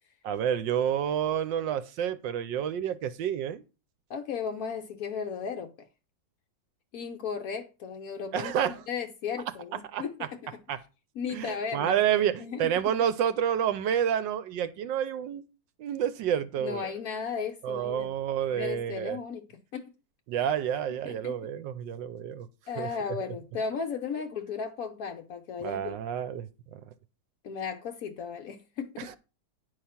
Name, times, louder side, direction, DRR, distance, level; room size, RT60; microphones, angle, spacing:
voice 1, 0.2-3.6 8.3-8.8 9.9-10.3 10.7-10.8 11.3-15.4 15.8-16.9 17.6-19.2 20.3-22.5 22.8-22.9 25.6-26.8 29.0-29.2, right 9 dB, 70° right, 1.3 m, -29 dB
voice 2, 4.1-5.9 6.9-8.5 8.9-10.4 11.2-12.0 12.4-12.7 16.6-18.1 18.5-19.9 21.0-21.4 22.7-25.9 27.4-29.1, left 6 dB, 65° left, 0.9 m, -35 dB
9.8 x 4.9 x 5.7 m
omnidirectional pair, 2.3 m